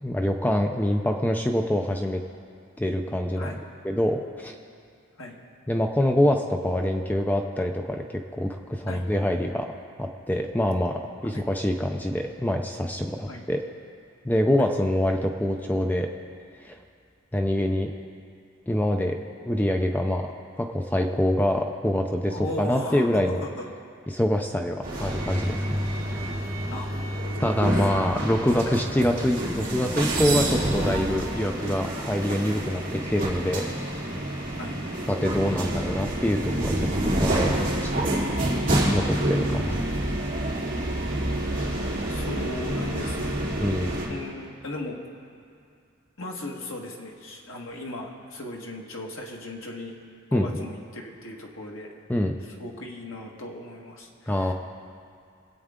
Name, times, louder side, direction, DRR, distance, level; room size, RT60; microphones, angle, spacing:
voice 1, 0.0-2.2 2.8-3.5 3.8-4.5 5.7-9.7 10.0-13.6 14.2-16.1 16.6-16.8 17.3-17.9 18.7-19.2 19.5-20.3 20.6-23.4 24.1-25.8 26.1-26.3 27.4-33.9 35.1-38.1 38.9-39.9 43.6-44.0 50.3-50.7 52.1-52.3 54.3-54.5, left 1 dB, 10° left, 3 dB, 0.5 m, -25 dB
voice 2, 22.2-23.6 26.7-26.9 27.2-27.7 28.7-28.8 34.6-34.8 39.7-40.0 41.4-41.5 42.1-43.4 44.1-45.0 46.2-49.9 50.3-51.9 52.6-54.5, left 1 dB, 75° left, 0 dB, 1.6 m, -37 dB
sound 1, 24.8-44.1, right 1 dB, 40° right, 3.5 m, -28 dB
24.0 x 8.3 x 3.7 m, 2.3 s
head